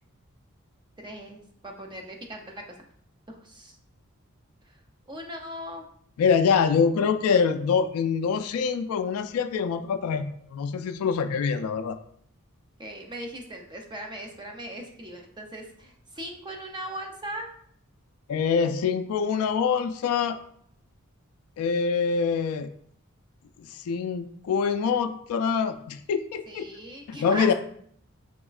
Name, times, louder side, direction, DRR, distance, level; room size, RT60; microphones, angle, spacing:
voice 1, 1.0-2.6 3.3-3.8 4.7-4.8 5.1-5.8 6.6-6.8 12.8-17.5 26.5-27.5, right 1 dB, 20° right, 2 dB, 0.4 m, -38 dB
voice 2, 6.2-12.0 18.3-20.4 21.6-22.7 23.6-26.7 27.1-27.5, left 6 dB, 80° left, 9 dB, 0.3 m, -25 dB
3.5 x 3.0 x 2.4 m, 0.64 s
head